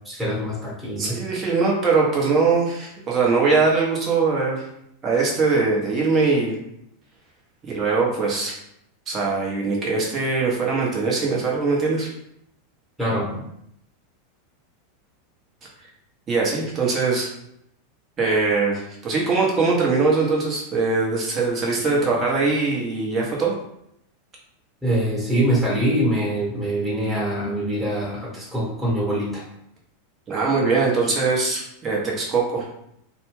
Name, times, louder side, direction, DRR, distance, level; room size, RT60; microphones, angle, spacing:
voice 1, 0.0-1.2 13.0-13.4 24.8-29.4, right 1 dB, 10° right, -6 dB, 1.3 m, -24 dB
voice 2, 1.0-4.6 5.0-6.5 7.6-8.6 9.1-12.1 16.3-17.3 18.2-23.5 30.3-32.6, right 4 dB, 30° right, -3 dB, 1.0 m, -21 dB
2.5 x 2.2 x 3.1 m, 0.76 s
hypercardioid pair, 95°, 0 cm